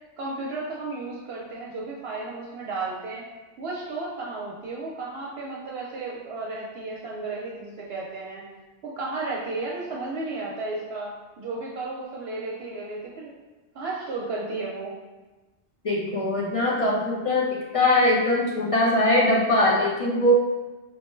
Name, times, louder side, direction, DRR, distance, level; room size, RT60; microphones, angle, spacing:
voice 1, 0.2-3.2 3.6-8.4 8.8-13.3 13.7-14.9, right 3 dB, 70° right, -3 dB, 0.8 m, -33 dB
voice 2, 15.8-20.3, left 1 dB, 55° left, -4 dB, 0.3 m, -21 dB
4.6 x 2.1 x 3.1 m, 1.2 s
omnidirectional pair, 1.1 m